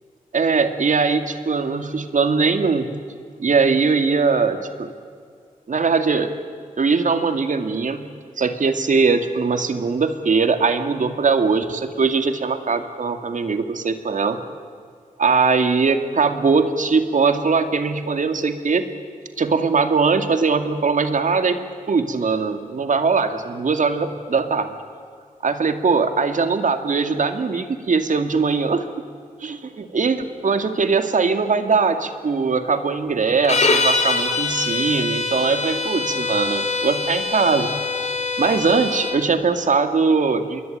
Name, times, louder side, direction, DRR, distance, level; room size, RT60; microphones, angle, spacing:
voice 1, 0.3-2.9 3.4-4.9 5.7-6.3 6.8-8.0 8.4-14.4 15.2-18.9 19.4-21.6 21.9-24.8 25.4-28.8 29.4-29.6 29.9-37.7 38.4-40.6, right 4 dB, 65° right, 8 dB, 2.3 m, -20 dB
sound 1, 33.4-39.2, left 3 dB, 50° left, 3.6 m, -23 dB
27.0 x 22.5 x 9.2 m, 2.1 s
wide cardioid pair, 85°, 14 cm